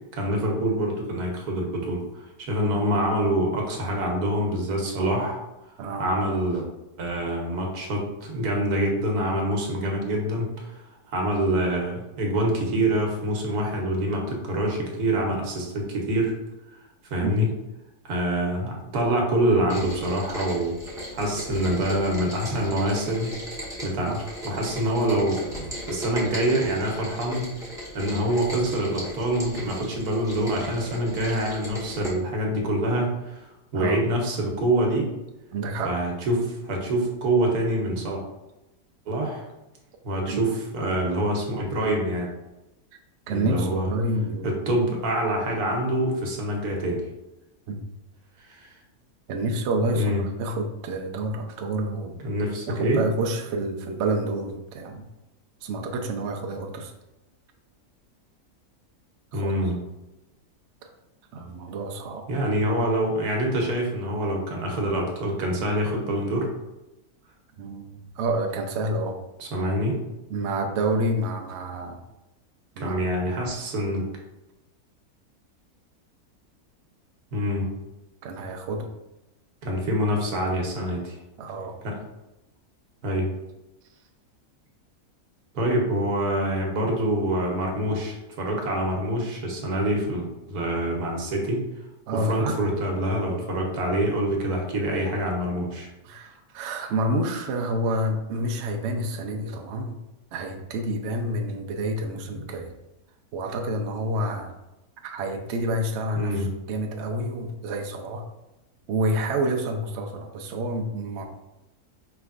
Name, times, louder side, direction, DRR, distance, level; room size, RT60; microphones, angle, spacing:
voice 1, 0.1-5.4 6.0-6.7 7.0-10.7 11.1-16.3 17.1-17.5 18.0-20.7 21.1-23.3 23.8-24.1 24.4-25.4 25.9-27.5 27.9-33.5 33.7-35.1 35.8-38.2 39.1-39.4 40.0-42.3 43.3-43.9 44.4-47.1 48.5-48.7 49.9-50.2 52.2-53.0 59.3-59.8 62.3-66.5 69.4-70.0 72.8-74.0 77.3-77.7 79.6-81.1 81.8-82.0 83.0-83.3 85.5-91.6 92.1-95.9 106.1-106.5, right 1 dB, 90° right, 1 dB, 1.4 m, -25 dB
Rain, 19.7-32.1, equal, 5° right, 0.9 m, -37 dB
voice 2, 35.5-35.9 40.3-40.5 43.3-44.5 47.7-47.8 49.3-52.1 52.7-55.1 55.6-56.9 59.3-59.5 61.3-62.2 67.6-69.2 70.3-72.0 72.8-73.0 78.2-78.9 81.4-81.8 92.1-92.6 96.0-100.0 100.3-102.7 103.3-104.5 105.0-108.2 108.9-111.2, right 1 dB, 65° right, 3 dB, 0.7 m, -28 dB
5.0 x 3.3 x 2.4 m, 0.97 s
omnidirectional pair, 1.6 m